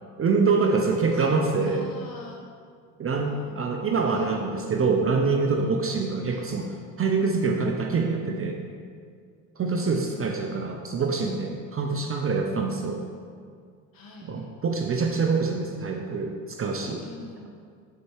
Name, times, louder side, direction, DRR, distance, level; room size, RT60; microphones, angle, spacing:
voice 1, 0.2-1.8 3.0-6.7 7.0-8.6 9.6-13.0 14.2-17.0, right 4 dB, 30° right, 2 dB, 0.6 m, -25 dB
voice 2, 1.6-2.5 3.2-4.2 6.2-6.5 9.8-10.5 13.9-14.5 17.0-17.5, left 2 dB, 45° left, -1 dB, 1.5 m, -46 dB
6.5 x 4.2 x 4.8 m, 2.1 s
supercardioid pair, 95°, 47 cm